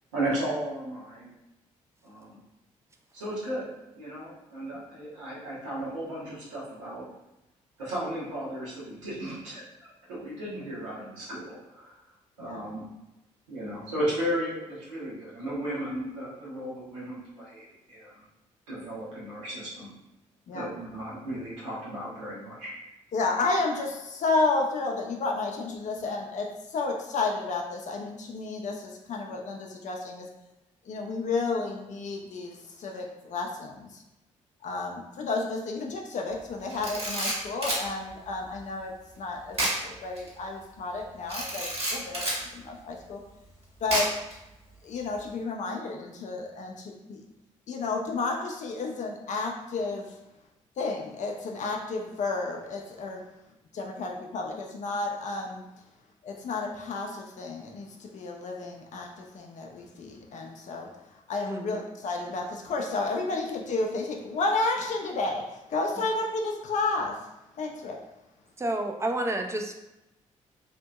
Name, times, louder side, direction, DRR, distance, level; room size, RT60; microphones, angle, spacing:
voice 1, 0.1-1.3 2.0-2.4 3.1-3.7 3.9-7.0 7.8-11.9 12.4-12.8 13.5-18.1 18.7-19.9 20.5-22.7, right 1 dB, 85° right, -8 dB, 1.0 m, -35 dB
voice 2, 23.1-30.3 30.8-34.0 34.6-39.6 39.8-43.2 43.8-44.1 44.8-47.3 47.7-50.2 50.8-53.3 53.7-55.6 56.2-67.3 67.6-68.0, left 3 dB, 50° left, 1 dB, 0.5 m, -31 dB
Camera, 36.7-37.9 39.5-39.8 40.2-40.3 41.3-42.4 43.9-44.3, right 1 dB, 40° right, 1.4 m, -29 dB
voice 3, 68.6-69.7, right 1 dB, 15° right, 4 dB, 0.4 m, -30 dB
2.8 x 2.6 x 2.3 m, 0.93 s
hypercardioid pair, 40°, 16 cm